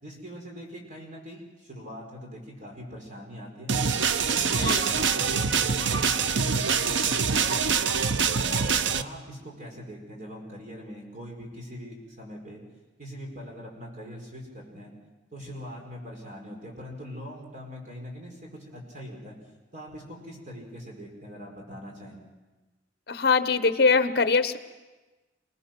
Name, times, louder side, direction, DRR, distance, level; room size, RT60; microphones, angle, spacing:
voice 1, 0.0-3.7 4.3-7.8 8.3-12.6 13.0-14.9 15.3-19.4 19.7-22.2, equal, 45° right, 0 dB, 5.0 m, -42 dB
sound 1, 3.7-9.0, right 6 dB, 90° right, 0.7 m, -25 dB
voice 2, 23.1-24.6, left 4 dB, 60° left, 11 dB, 1.0 m, -22 dB
26.0 x 19.0 x 6.1 m, 1.2 s
head